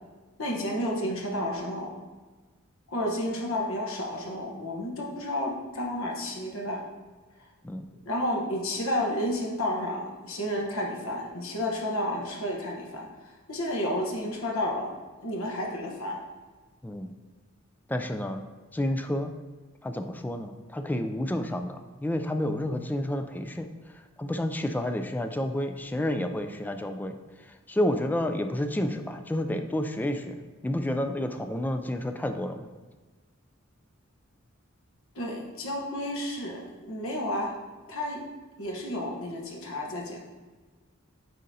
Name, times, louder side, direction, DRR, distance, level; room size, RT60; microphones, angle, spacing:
voice 1, 0.4-1.9 2.9-6.8 8.0-14.9 15.2-16.2 35.1-37.5 37.9-38.2 38.6-40.2, left 1 dB, 75° left, 0 dB, 1.1 m, -31 dB
voice 2, 17.9-18.4 18.7-19.3 19.8-23.7 23.9-27.2 27.5-32.7, left 1 dB, 10° left, 7 dB, 0.3 m, -30 dB
9.1 x 3.8 x 2.7 m, 1.3 s
head